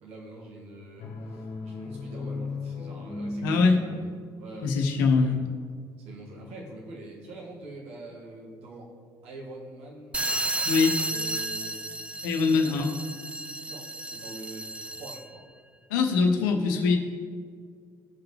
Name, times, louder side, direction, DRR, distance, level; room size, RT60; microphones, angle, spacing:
voice 1, 0.0-4.1 4.4-5.4 6.0-8.9 9.2-10.2 10.9-12.0 12.4-12.8 13.6-15.5, right 2 dB, 65° right, -3 dB, 2.2 m, -44 dB
sound 1, 1.0-4.7, left 3 dB, 60° left, 1.5 m, -36 dB
voice 2, 3.4-3.8 4.6-5.4 10.6-11.0 12.2-12.9 15.9-17.0, left 4 dB, 80° left, 3 dB, 1.0 m, -22 dB
sound 2, 10.1-15.4, right 1 dB, 10° right, 0.6 m, -32 dB
17.0 x 5.8 x 3.4 m, 2.1 s
hypercardioid pair, 50°, 11 cm